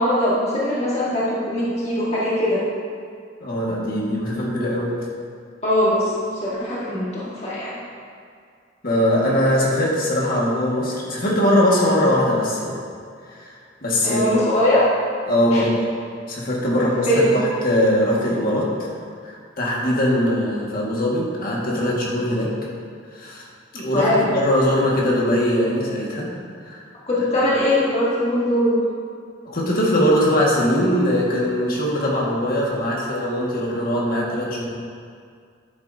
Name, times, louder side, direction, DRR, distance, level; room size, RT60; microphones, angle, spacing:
voice 1, 0.0-2.6 5.6-6.1 6.4-7.8 14.0-14.8 15.5-15.6 16.7-17.3 23.9-24.3 27.1-28.8, left 1 dB, 35° left, -8 dB, 1.7 m, -21 dB
voice 2, 3.4-4.9 8.8-12.8 13.3-13.6 13.8-14.2 15.3-15.9 16.3-18.9 19.2-22.5 23.1-23.4 23.7-26.3 26.6-26.8 27.4-27.5 29.5-34.6, left 1 dB, 55° left, -4 dB, 1.8 m, -21 dB
10.5 x 9.2 x 2.7 m, 2.2 s
head